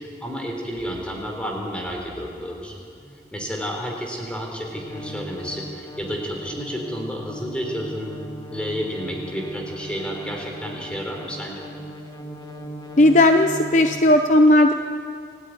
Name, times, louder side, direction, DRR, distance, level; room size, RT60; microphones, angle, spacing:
voice 1, 0.0-2.7 3.3-8.2 8.5-11.6, equal, 5° left, 0 dB, 3.9 m, -31 dB
sound 1, 0.8-14.0, right 1 dB, 20° left, 2.3 m, -39 dB
voice 2, 13.0-14.7, left 1 dB, 40° left, 6 dB, 0.8 m, -15 dB
28.0 x 14.0 x 9.8 m, 2.4 s
head